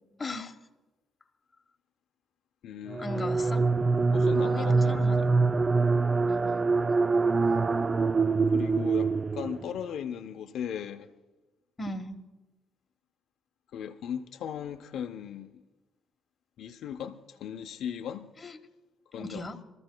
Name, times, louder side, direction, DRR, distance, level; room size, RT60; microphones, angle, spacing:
voice 1, 0.1-0.5 3.0-3.7 4.4-5.2 6.3-6.7 11.8-12.2 18.4-18.6 19.2-19.6, left 2 dB, 25° left, 1.2 m, -38 dB
voice 2, 2.6-3.3 4.1-5.1 8.5-11.1 13.7-15.5 16.6-18.3 19.1-19.4, left 9 dB, 75° left, 0.6 m, -37 dB
sound 1, 2.9-9.8, right 4 dB, 30° right, 0.3 m, -25 dB
27.0 x 14.0 x 2.2 m
cardioid pair, 90°, 0 cm